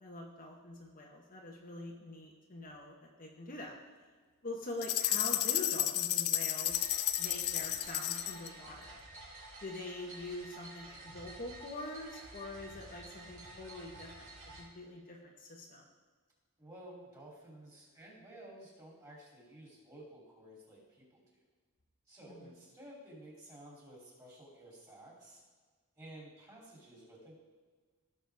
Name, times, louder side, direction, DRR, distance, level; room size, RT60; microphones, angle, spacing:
voice 1, 0.0-3.7 4.4-6.8 7.2-9.0 9.6-15.9 22.3-22.5, left 2 dB, 40° left, -1 dB, 1.2 m, -45 dB
sound 1, 4.8-8.5, left 13 dB, 70° left, 0.5 m, -32 dB
sound 2, 6.7-14.6, right 2 dB, 60° right, 3.3 m, -51 dB
voice 2, 16.6-21.2 22.1-25.4 25.9-27.4, right 1 dB, 15° right, -4 dB, 3.1 m, -53 dB
16.5 x 6.2 x 3.5 m, 1.5 s
head